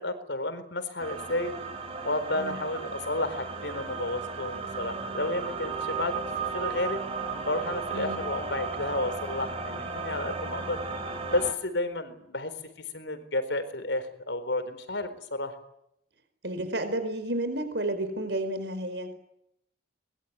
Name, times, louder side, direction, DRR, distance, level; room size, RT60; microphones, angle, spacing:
voice 1, 0.0-1.6 2.0-6.2 6.5-7.0 7.3-10.8 11.2-12.5 12.9-15.6, left 2 dB, 80° left, 11 dB, 4.3 m, -31 dB
sound 1, 1.0-11.5, right 4 dB, 35° right, 4.6 m, -35 dB
voice 2, 7.9-8.2 16.4-19.1, right 1 dB, 70° right, 9 dB, 4.6 m, -31 dB
23.5 x 21.5 x 9.5 m, 0.78 s
head